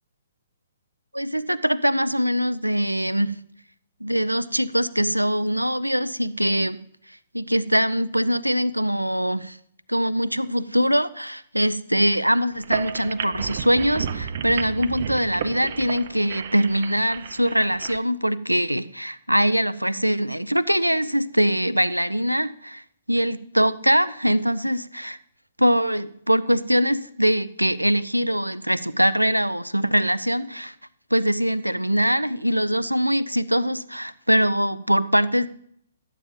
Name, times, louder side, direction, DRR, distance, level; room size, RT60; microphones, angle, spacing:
voice 1, 1.1-3.3 4.0-6.8 7.3-9.6 9.9-22.8 23.1-25.2 25.6-30.7 31.1-35.5, equal, 90° right, 16 dB, 0.5 m, -22 dB
sound 1, 12.5-18.0, right 7 dB, 45° right, 0.6 m, -32 dB
13.0 x 9.0 x 3.9 m, 0.67 s
figure-of-eight pair, 125°, 0 cm